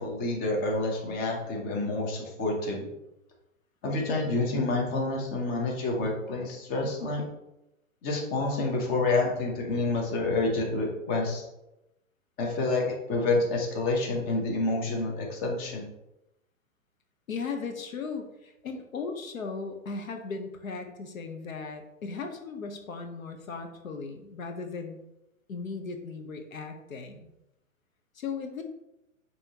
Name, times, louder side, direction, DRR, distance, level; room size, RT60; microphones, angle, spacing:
voice 1, 0.0-2.9 3.8-7.2 8.0-11.4 12.4-15.9, left 2 dB, 25° left, 0 dB, 0.8 m, -28 dB
voice 2, 17.3-25.0 25.5-27.3 28.1-28.6, left 4 dB, 90° left, 5 dB, 0.8 m, -37 dB
5.7 x 2.9 x 2.8 m, 0.89 s
hypercardioid pair, 130°, 40 cm